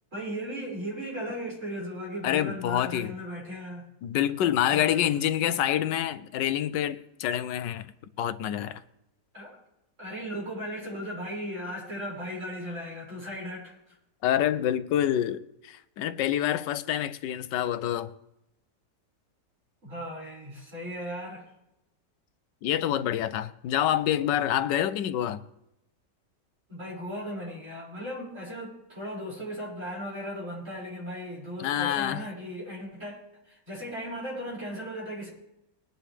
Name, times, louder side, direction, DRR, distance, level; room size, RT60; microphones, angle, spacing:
voice 1, 0.1-3.9 4.7-5.2 9.3-9.6 10.0-13.9 19.8-21.4 26.7-33.2 33.4-35.3, equal, 40° right, 6.1 m, -37 dB
voice 2, 2.2-3.1 4.0-7.9 8.2-8.8 14.2-18.1 22.6-25.4 31.6-32.2, left 11 dB, 85° left, 1.3 m, -27 dB
21.0 x 10.5 x 3.3 m
omnidirectional pair, 1.9 m